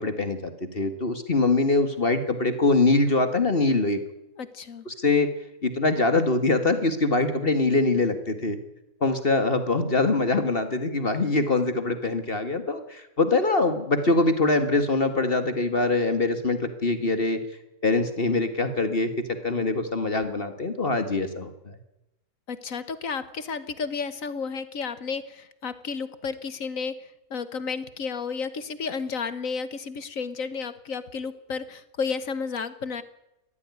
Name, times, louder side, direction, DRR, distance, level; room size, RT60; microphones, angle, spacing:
voice 1, 0.0-4.0 4.9-5.3 5.6-8.6 9.0-17.4 17.8-19.1 19.4-21.8, left 3 dB, 35° left, 9 dB, 1.9 m, -23 dB
voice 2, 4.4-4.8 22.5-33.0, left 5 dB, 60° left, 14 dB, 1.6 m, -32 dB
20.5 x 14.5 x 9.6 m, 0.91 s
omnidirectional pair, 1.6 m